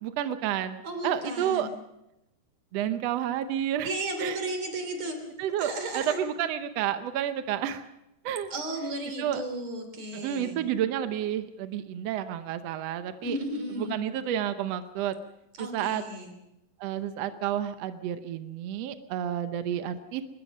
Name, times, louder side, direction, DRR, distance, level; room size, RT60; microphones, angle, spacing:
voice 1, 0.0-1.7 2.7-3.9 4.2-4.4 5.4-7.8 8.2-8.5 9.2-9.4 10.1-13.4 13.8-15.1 15.6-16.0 16.8-20.2, right 10 dB, 75° right, 9 dB, 1.5 m, -30 dB
voice 2, 0.8-1.7 3.8-5.2 5.6-6.2 8.5-10.6 13.2-14.0 15.6-16.3, right 1 dB, 50° right, 6 dB, 4.3 m, -34 dB
23.5 x 21.0 x 5.4 m, 0.87 s
omnidirectional pair, 4.1 m